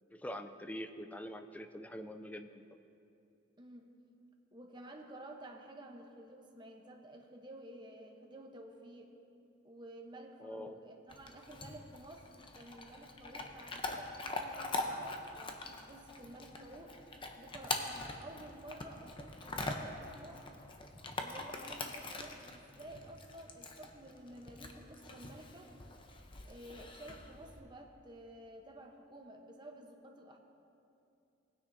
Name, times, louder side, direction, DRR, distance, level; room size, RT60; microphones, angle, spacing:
voice 1, 0.1-2.6 10.4-10.8, equal, 10° left, 8 dB, 0.4 m, -44 dB
voice 2, 3.6-4.0 4.5-9.1 9.6-17.0 17.4-20.4 21.1-25.7 26.4-30.4, right 1 dB, 25° right, 2 dB, 0.9 m, -52 dB
Chewing mastication / Dog, 11.1-27.6, left 2 dB, 25° left, 0.7 m, -43 dB
19.0 x 9.5 x 2.7 m, 2.7 s
head